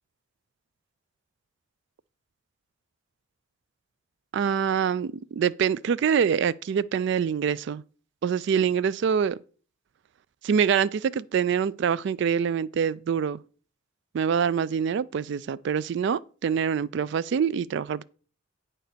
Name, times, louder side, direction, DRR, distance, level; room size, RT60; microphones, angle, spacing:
voice 1, 4.3-7.8 8.2-9.4 10.4-13.4 14.1-18.0, right 7 dB, 65° right, 0.3 m, -25 dB
9.2 x 4.4 x 6.6 m
head